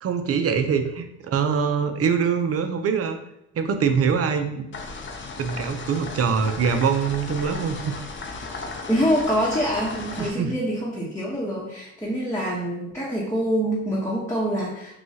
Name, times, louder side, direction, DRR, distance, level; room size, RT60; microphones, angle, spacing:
voice 1, 0.0-3.2 3.5-4.7 5.4-7.9 10.2-10.6, right 6 dB, 50° right, 7 dB, 0.6 m, -23 dB
sound 1, 4.7-10.3, left 3 dB, 40° left, 0.6 m, -36 dB
voice 2, 8.9-14.9, equal, 10° left, -7 dB, 1.0 m, -25 dB
6.0 x 2.3 x 2.8 m, 0.86 s
cardioid pair, 90°, 30 cm